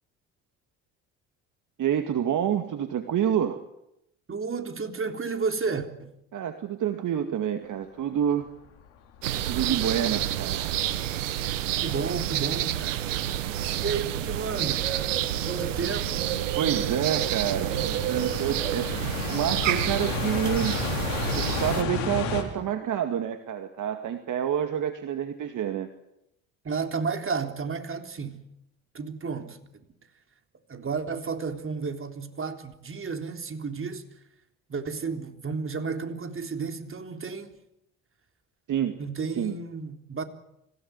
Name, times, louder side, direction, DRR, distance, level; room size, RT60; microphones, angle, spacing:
voice 1, 1.8-3.6 6.3-8.5 9.5-10.8 13.7-13.8 16.6-20.8 21.3-25.9 38.7-39.0 39.4-39.5, right 9 dB, 55° right, 2.2 m, -28 dB
voice 2, 4.3-6.1 11.8-13.1 13.8-15.2 15.5-16.3 26.6-28.4 28.9-29.8 30.7-34.0 34.7-37.5 39.0-40.2, right 5 dB, 35° right, 3.7 m, -32 dB
sound 1, 8.4-8.5 9.1-9.2 9.7-10.4 10.8-22.4, left 5 dB, 75° left, 4.3 m, -35 dB
sound 2, 9.2-21.8, right 12 dB, 90° right, 1.3 m, -29 dB
26.0 x 17.0 x 9.6 m
hypercardioid pair, 55°, 37 cm